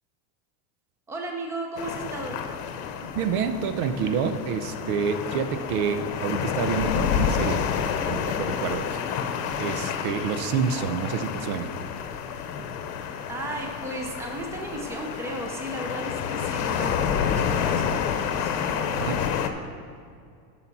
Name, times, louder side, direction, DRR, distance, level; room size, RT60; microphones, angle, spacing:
voice 1, 1.1-2.4 13.3-19.2, right 2 dB, 5° right, 1 dB, 0.6 m, -35 dB
sound 1, 1.8-19.5, left 7 dB, 75° left, 1.0 m, -29 dB
voice 2, 3.1-7.6 8.1-8.9 9.6-11.7 19.0-19.2, right 6 dB, 65° right, 9 dB, 0.8 m, -28 dB
12.0 x 5.9 x 4.1 m, 2.3 s
supercardioid pair, 145°, 47 cm